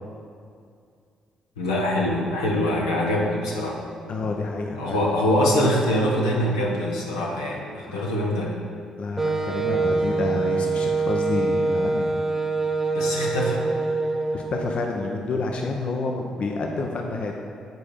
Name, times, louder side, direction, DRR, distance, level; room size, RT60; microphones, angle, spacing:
voice 1, 1.6-3.8 4.8-8.6 12.9-13.6, left 1 dB, 90° left, -4 dB, 1.0 m, -24 dB
voice 2, 4.1-5.0 7.9-8.0 9.0-12.1 14.3-17.3, left 3 dB, 55° left, 2 dB, 0.7 m, -29 dB
Wind instrument woodwind instrument, 9.2-14.8, right 3 dB, 15° right, 1.0 m, -24 dB
9.2 x 4.8 x 5.0 m, 2.3 s
hypercardioid pair, 45°, 2 cm